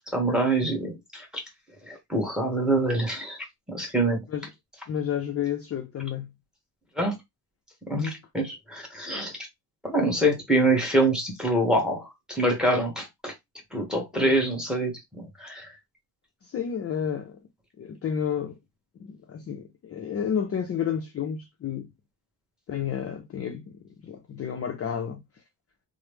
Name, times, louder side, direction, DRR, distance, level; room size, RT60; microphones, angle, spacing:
voice 1, 0.1-1.4 1.9-3.4 3.7-4.2 7.0-7.1 7.9-8.1 8.3-9.4 9.8-13.3 13.7-14.9 15.2-15.7, right 1 dB, ahead, 1.1 m, -25 dB
voice 2, 4.9-6.3 7.9-8.2 14.2-14.4 16.4-17.4 17.8-18.6 19.0-21.9 22.7-23.7 24.0-25.2, left 8 dB, 35° left, 0.4 m, -31 dB
2.9 x 2.0 x 3.2 m
cardioid pair, 120°, 41 cm